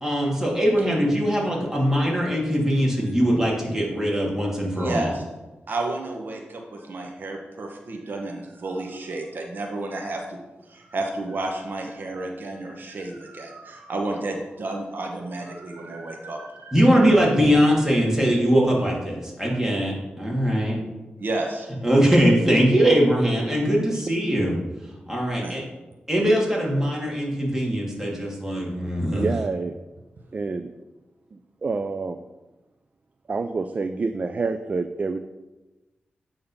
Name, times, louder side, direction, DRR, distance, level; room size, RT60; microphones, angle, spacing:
voice 1, 0.0-5.1 16.7-20.8 21.8-24.6 25.1-25.6 26.1-29.3, equal, 10° right, -4 dB, 2.4 m, -21 dB
voice 2, 4.7-5.2 5.7-10.4 10.7-16.8 21.2-21.7 25.4-25.6, right 2 dB, 65° right, 2 dB, 1.0 m, -31 dB
voice 3, 29.1-29.7 30.3-30.7 31.3-32.2 33.3-35.2, right 4 dB, 40° right, 8 dB, 0.4 m, -27 dB
8.7 x 3.9 x 5.6 m, 1.1 s
wide cardioid pair, 90°, 4 cm